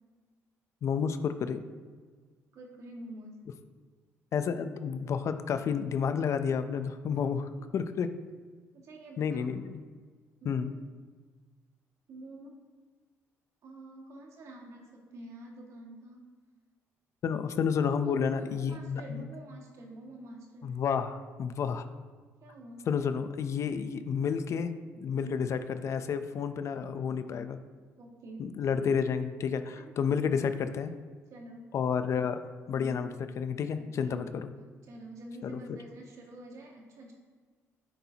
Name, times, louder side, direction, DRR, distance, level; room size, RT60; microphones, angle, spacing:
voice 1, 0.8-1.6 4.3-8.1 9.2-9.8 10.5-10.7 17.2-19.2 20.6-21.9 22.9-27.6 28.4-30.9 31.7-34.5 35.4-35.6, left 6 dB, 55° left, 10 dB, 0.6 m, -31 dB
voice 2, 2.5-3.3 7.0-7.7 8.7-9.5 10.4-10.8 12.1-12.5 13.6-16.2 17.8-20.7 22.4-22.9 25.2-25.4 28.0-28.4 29.7-30.1 31.3-31.7 32.7-33.1 33.8-34.2 34.8-37.1, right 1 dB, 65° right, 0 dB, 2.0 m, -47 dB
10.0 x 8.1 x 2.9 m, 1.5 s
cardioid pair, 90°, 6 cm